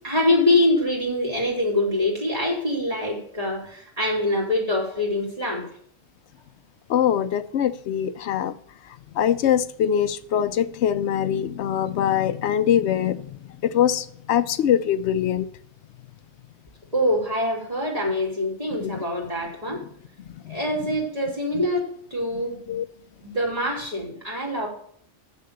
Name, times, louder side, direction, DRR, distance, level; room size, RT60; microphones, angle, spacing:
voice 1, 0.0-5.7 16.9-19.8 20.5-22.5 23.2-24.7, left 1 dB, 35° right, -3 dB, 3.1 m, -24 dB
voice 2, 6.9-8.5 9.2-13.2 13.6-15.5 18.8-19.0 20.5-20.6 22.7-22.8, left 9 dB, 85° left, 13 dB, 0.9 m, -23 dB
7.3 x 6.5 x 6.8 m, 0.64 s
omnidirectional pair, 1.1 m